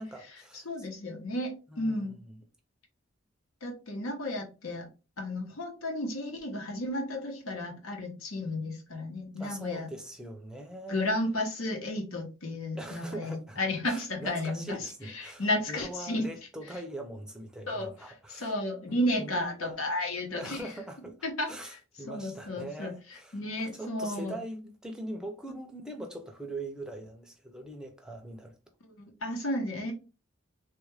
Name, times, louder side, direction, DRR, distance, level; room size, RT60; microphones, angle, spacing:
voice 1, 0.0-0.7 1.7-2.4 9.4-11.1 12.8-13.6 13.8-18.5 18.9-19.9 20.3-21.2 21.5-28.5, right 1 dB, 5° right, 0.5 m, -42 dB
voice 2, 0.6-2.2 3.6-4.9 5.2-9.9 10.9-16.3 17.7-17.9 18.3-20.6 21.2-21.5 22.1-22.9 23.3-24.4 29.0-29.9, left 1 dB, 85° left, 1.0 m, -33 dB
3.4 x 2.4 x 3.2 m
head